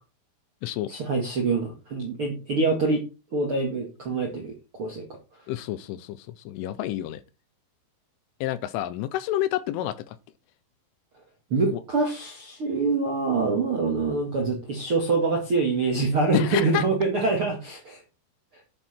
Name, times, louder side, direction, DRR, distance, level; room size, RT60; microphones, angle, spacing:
voice 1, 0.9-3.0 3.3-5.1 11.5-18.0, right 3 dB, 55° right, 1.5 m, -25 dB
voice 2, 5.5-7.2 8.4-10.2 11.7-11.8 16.3-16.8, left 13 dB, 80° left, 3.1 m, -29 dB
10.5 x 8.0 x 4.4 m
omnidirectional pair, 5.9 m